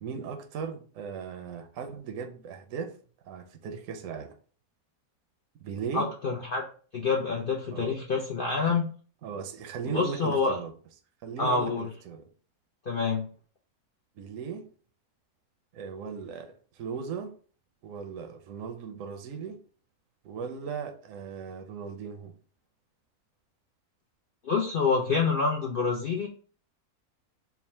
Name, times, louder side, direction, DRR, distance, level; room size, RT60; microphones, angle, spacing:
voice 1, 0.0-3.0 3.2-4.3 5.6-6.1 7.7-7.9 9.2-10.7 11.2-12.3 14.2-14.7 15.7-17.3 17.8-19.6 20.2-22.4, right 6 dB, 70° right, 0.8 m, -37 dB
voice 2, 5.9-6.6 6.9-8.9 9.9-10.6 11.4-11.8 12.9-13.3 24.4-26.3, left 4 dB, 70° left, 0.5 m, -27 dB
3.5 x 2.1 x 4.3 m
omnidirectional pair, 1.7 m